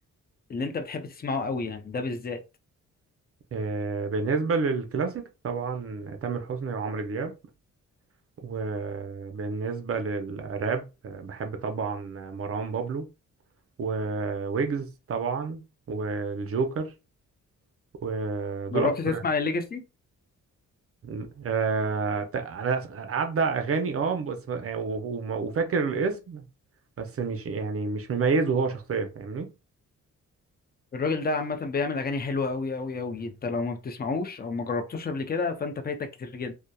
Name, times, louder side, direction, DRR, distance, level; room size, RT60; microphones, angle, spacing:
voice 1, 0.5-2.4 18.7-19.8 30.9-36.5, left 4 dB, 30° left, 0.5 m, -29 dB
voice 2, 3.5-7.3 8.4-13.1 13.8-15.6 15.9-16.9 18.0-19.2 21.0-26.4 27.0-29.5, right 4 dB, 45° right, 0.6 m, -29 dB
2.7 x 2.1 x 2.3 m
cardioid pair, 75°, 31 cm